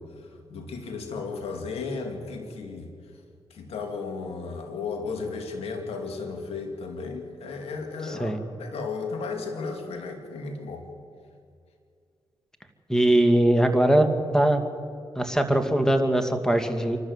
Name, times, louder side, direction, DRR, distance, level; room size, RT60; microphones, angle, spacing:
voice 1, 0.0-2.9 3.5-10.9, left 4 dB, 80° left, 4 dB, 2.6 m, -34 dB
voice 2, 12.9-14.6 15.2-17.0, right 1 dB, 5° left, 7 dB, 2.4 m, -21 dB
27.0 x 12.5 x 8.1 m, 2.3 s
cardioid pair, 55°, 10 cm